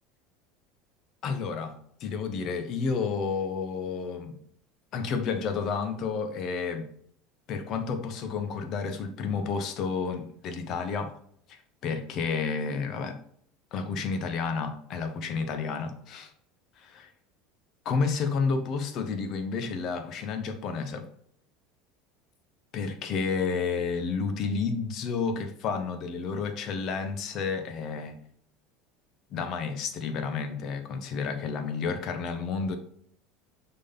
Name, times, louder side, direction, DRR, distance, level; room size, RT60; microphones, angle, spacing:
voice 1, 1.2-4.4 4.9-6.9 7.5-11.1 11.5-11.6 11.8-13.2 13.7-16.3 16.8-17.1 17.8-21.1 22.7-28.2 29.3-32.8, left 5 dB, 50° left, 1.0 m, -31 dB
6.3 x 3.9 x 4.0 m
hypercardioid pair, 75°, 0 cm